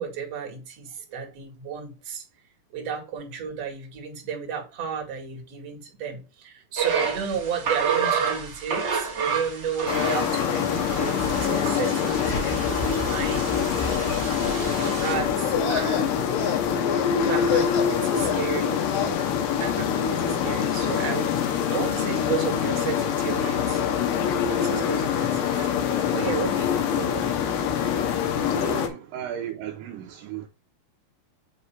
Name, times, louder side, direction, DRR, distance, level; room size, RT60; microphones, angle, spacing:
voice 1, 0.0-2.3 2.7-14.1 14.6-16.6 17.3-18.9 19.6-23.8 24.5-27.5, right 6 dB, 50° right, 2.4 m, -33 dB
sound 1, 6.8-15.1, right 6 dB, 65° right, 1.0 m, -30 dB
sound 2, 9.9-28.9, left 7 dB, 85° left, 3.2 m, -25 dB
sound 3, 15.4-19.2, left 8 dB, 60° left, 3.0 m, -30 dB
voice 2, 28.5-30.5, right 10 dB, 80° right, 2.0 m, -35 dB
8.1 x 3.2 x 5.6 m
omnidirectional pair, 4.8 m